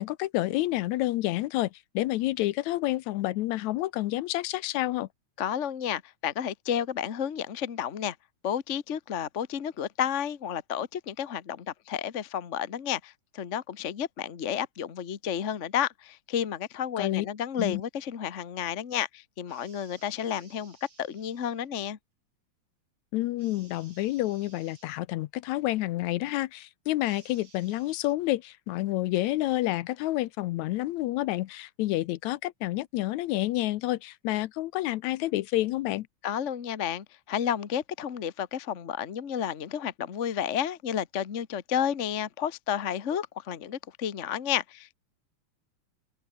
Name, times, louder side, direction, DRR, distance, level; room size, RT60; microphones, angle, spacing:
voice 1, 0.0-5.1 17.0-17.3 17.6-17.8 23.1-36.1, left 16 dB, 75° left, 1.9 m, -29 dB
voice 2, 5.4-8.2 8.4-22.0 36.2-45.0, left 9 dB, 60° left, 0.7 m, -31 dB
sound 1, 19.5-21.7 23.4-25.0 27.0-28.1, right 5 dB, 40° right, 3.7 m, -58 dB
open air
omnidirectional pair, 3.4 m